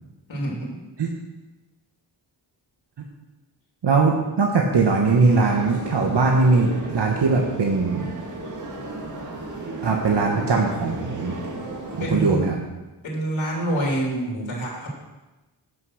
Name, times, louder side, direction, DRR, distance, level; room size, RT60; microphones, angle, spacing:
voice 1, 0.3-0.8 12.0-12.5 13.0-14.9, right 1 dB, 85° left, -2 dB, 3.1 m, -26 dB
voice 2, 3.8-8.1 9.8-11.4 12.0-12.6, right 4 dB, 65° right, 0 dB, 1.3 m, -20 dB
sound 1, 4.8-12.1, right 2 dB, 40° right, 1.9 m, -34 dB
10.5 x 6.2 x 6.4 m, 1.1 s
wide cardioid pair, 120°, 45 cm